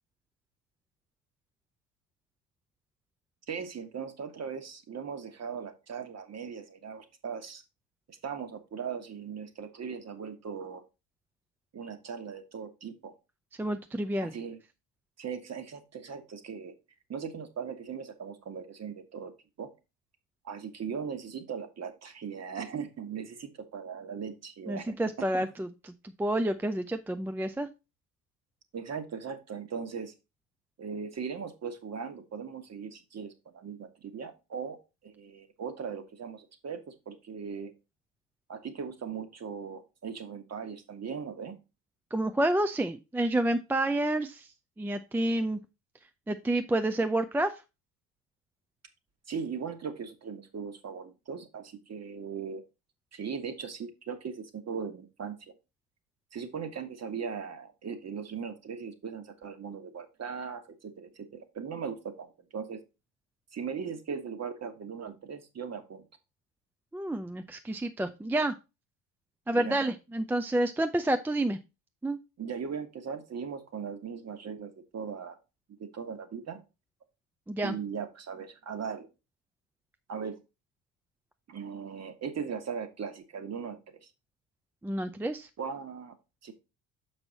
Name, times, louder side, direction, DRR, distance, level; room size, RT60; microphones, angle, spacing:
voice 1, 3.5-7.6 8.1-10.8 11.7-13.1 14.2-14.6 15.2-16.7 17.1-19.3 19.6-19.7 20.4-24.9 28.7-30.1 30.8-34.8 35.0-37.7 38.5-41.6 49.3-52.6 53.1-55.4 56.3-62.8 63.5-66.1 69.5-69.8 72.4-75.4 75.8-76.6 77.6-79.1 80.1-80.4 81.5-84.1 85.6-86.2 86.4-86.5, right 6 dB, 35° right, 9 dB, 1.5 m, -39 dB
voice 2, 13.6-14.3 24.7-25.9 26.2-27.7 42.1-44.5 44.8-45.6 46.3-47.5 66.9-68.5 69.5-71.6 72.0-72.2 77.5-77.7 84.8-85.5, right 1 dB, 5° right, 9 dB, 0.4 m, -29 dB
6.8 x 5.4 x 4.1 m, 0.27 s
hypercardioid pair, 60°, 45 cm